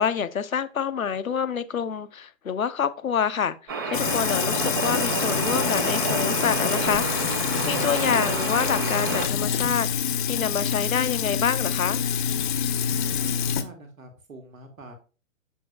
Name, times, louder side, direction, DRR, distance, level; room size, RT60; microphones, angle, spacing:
voice 1, 0.0-7.1 7.7-9.9 10.3-12.1, left 7 dB, 90° left, 0.6 m, -27 dB
sound 1, 3.7-9.3, right 5 dB, 20° right, 0.4 m, -29 dB
Sink (filling or washing), 3.9-13.6, left 8 dB, 40° left, 0.6 m, -26 dB
voice 2, 13.0-14.9, right 3 dB, 80° right, 1.7 m, -45 dB
6.9 x 6.3 x 2.2 m
figure-of-eight pair, 115°, 40 cm